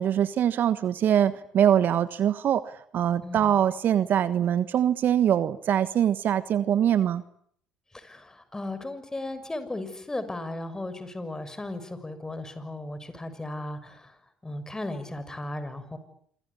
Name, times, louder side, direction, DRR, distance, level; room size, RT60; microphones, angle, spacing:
voice 1, 0.0-7.2, right 10 dB, 50° right, 14 dB, 1.3 m, -23 dB
voice 2, 3.2-3.6 7.9-14.2 14.4-16.0, left 2 dB, 15° left, 12 dB, 6.7 m, -36 dB
27.0 x 24.0 x 8.6 m, 0.66 s
hypercardioid pair, 60°, 4 cm